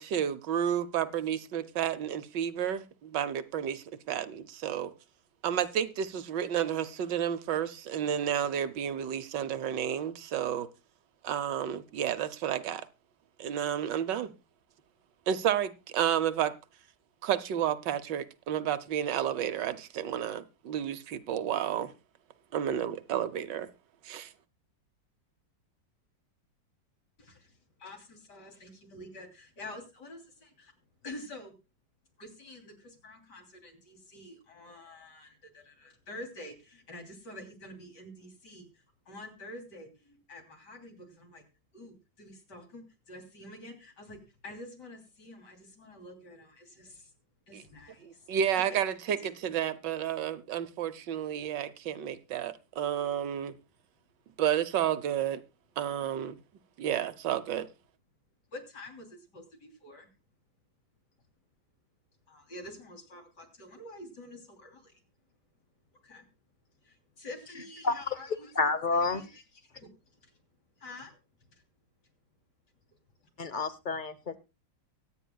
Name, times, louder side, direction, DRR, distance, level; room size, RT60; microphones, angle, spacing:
voice 1, 0.0-4.9 5.4-10.7 11.2-12.9 13.4-14.3 15.3-16.5 17.2-21.9 22.5-23.7 24.0-24.3 47.5-47.6 48.0-53.6 54.4-55.4 55.8-56.4 56.8-57.7, right 9 dB, 70° right, 13 dB, 1.5 m, -31 dB
voice 2, 27.2-30.7 31.0-31.5 32.2-41.5 41.7-47.1 47.5-48.2 48.5-48.8 49.2-49.3 58.5-60.1 62.3-65.0 66.0-66.3 66.8-68.5 68.9-69.3 69.6-70.4 70.8-71.2 71.5-71.6, left 1 dB, 60° left, 4 dB, 3.6 m, -48 dB
voice 3, 68.6-69.2 73.4-74.4, left 3 dB, 35° left, 13 dB, 0.8 m, -29 dB
23.5 x 9.3 x 2.3 m, 0.27 s
omnidirectional pair, 2.1 m